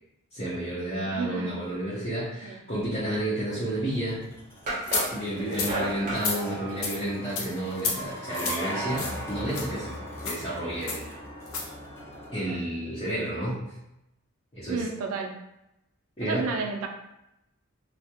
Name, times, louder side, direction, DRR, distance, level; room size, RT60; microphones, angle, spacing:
voice 1, 0.3-4.2 5.1-9.9 10.2-11.1 12.3-13.6 14.5-14.8 16.2-16.5, right 1 dB, 25° left, -12 dB, 0.7 m, -31 dB
voice 2, 1.0-1.6 2.4-2.6 5.7-5.9 14.7-15.4 16.2-16.9, right 4 dB, 85° right, 3 dB, 0.4 m, -32 dB
sound 1, 3.3-12.6, equal, 10° left, 0.3 m, -39 dB
sound 2, 3.8-3.9 4.7-6.3, right 1 dB, 35° right, 0.6 m, -32 dB
sound 3, 4.9-5.1 5.5-5.7 6.2-6.4 6.8-7.0 7.4-7.5 7.8-8.0 8.3-8.6 9.0-9.2 9.5-9.7 10.2-10.4 10.9-11.0 11.5-11.7, left 4 dB, 70° left, 0.5 m, -29 dB
2.3 x 2.0 x 2.8 m, 0.88 s
head